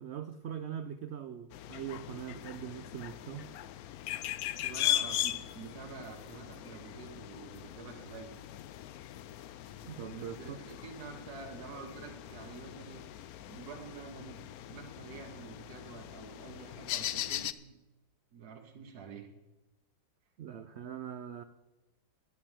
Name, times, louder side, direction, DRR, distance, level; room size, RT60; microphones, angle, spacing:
voice 1, 0.0-3.5 9.8-10.6 20.4-21.4, right 9 dB, 85° right, 10 dB, 0.5 m, -42 dB
sound 1, 1.5-17.5, left 13 dB, 70° left, 0.9 m, -39 dB
voice 2, 4.6-8.4 10.1-14.4 14.7-17.7 18.3-19.3, right 6 dB, 60° right, 2 dB, 1.6 m, -48 dB
11.5 x 9.0 x 7.3 m, 1.0 s
omnidirectional pair, 1.9 m